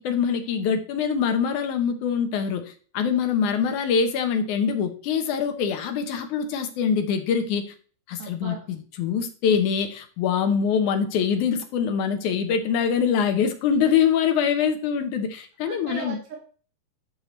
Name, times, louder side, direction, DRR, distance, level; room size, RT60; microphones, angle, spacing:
voice 1, 0.0-7.6 8.1-16.2, left 7 dB, 70° left, 6 dB, 2.0 m, -24 dB
voice 2, 3.1-3.6 8.2-8.6 15.6-16.4, right 4 dB, 85° right, 1 dB, 3.3 m, -38 dB
12.0 x 5.5 x 3.1 m, 0.41 s
omnidirectional pair, 4.3 m